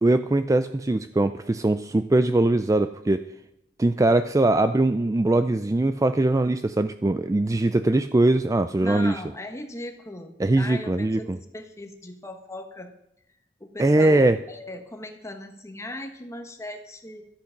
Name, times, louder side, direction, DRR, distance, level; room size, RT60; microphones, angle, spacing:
voice 1, 0.0-3.2 3.8-9.1 10.4-11.4 13.8-14.4, right 2 dB, 20° right, 11 dB, 0.3 m, -21 dB
voice 2, 8.8-12.9 13.6-17.3, left 1 dB, 15° left, 4 dB, 1.3 m, -38 dB
13.0 x 8.4 x 5.8 m, 0.87 s
head